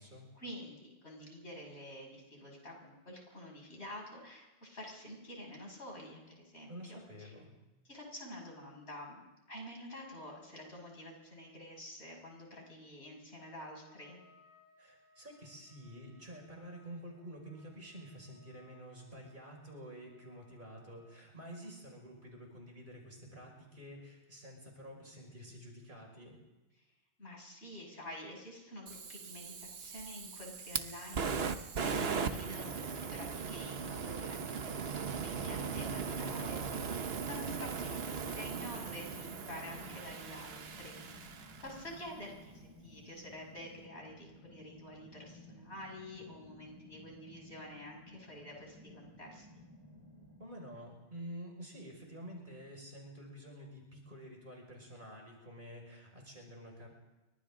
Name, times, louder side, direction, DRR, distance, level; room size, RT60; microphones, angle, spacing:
voice 1, 0.3-7.3 7.8-9.2 9.5-14.2 27.2-36.9 37.3-49.5, left 1 dB, 75° left, -1 dB, 6.7 m, -48 dB
voice 2, 6.7-7.5 14.8-26.4 36.0-36.8 50.4-56.9, equal, 50° right, 0 dB, 5.9 m, -49 dB
Trumpet, 13.8-21.1, left 2 dB, 50° left, 7.5 m, -66 dB
Fire, 28.9-42.0, right 5 dB, 65° right, 1.2 m, -39 dB
sound 1, 38.4-50.4, left 1 dB, 25° right, 6.4 m, -56 dB
29.5 x 25.0 x 3.8 m, 1.1 s
omnidirectional pair, 1.1 m